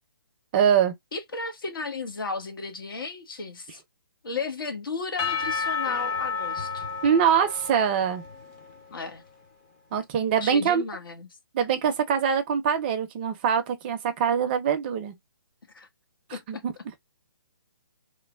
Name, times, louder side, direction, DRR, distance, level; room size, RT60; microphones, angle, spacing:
voice 1, 0.5-0.9 7.0-8.2 9.9-10.8 11.5-15.2 16.3-16.7, right 7 dB, 25° right, 0.5 m, -23 dB
voice 2, 1.1-3.8 4.2-6.9 8.9-9.2 10.4-11.3 15.7-15.9 16.3-16.6, left 4 dB, 65° left, 1.1 m, -34 dB
Percussion / Church bell, 5.2-9.1, left 5 dB, 25° left, 0.7 m, -31 dB
3.1 x 2.1 x 2.3 m
hypercardioid pair, 150°, 12 cm